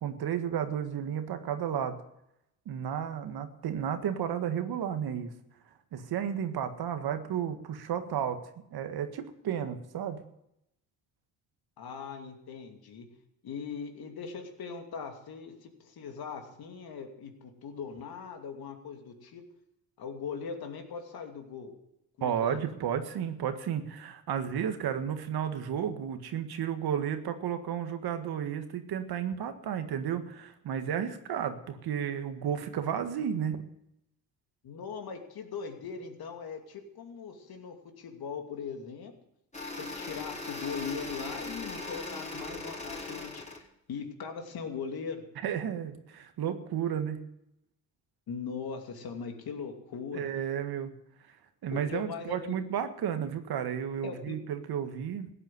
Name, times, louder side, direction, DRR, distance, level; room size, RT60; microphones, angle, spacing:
voice 1, 0.0-2.0 2.7-5.3 5.9-8.4 8.7-10.2 22.2-33.6 45.4-47.2 50.1-50.9 51.6-55.3, right 8 dB, 65° right, 8 dB, 1.8 m, -32 dB
voice 2, 11.8-13.1 13.4-19.4 20.0-21.7 22.2-22.6 34.6-39.1 39.8-43.6 43.9-45.2 48.3-50.3 51.7-52.4 54.0-54.4, left 6 dB, 60° left, 4 dB, 2.8 m, -40 dB
sound 1, 39.5-43.6, left 3 dB, 15° left, 4.5 m, -39 dB
15.5 x 8.9 x 7.8 m, 0.81 s
supercardioid pair, 75°, 41 cm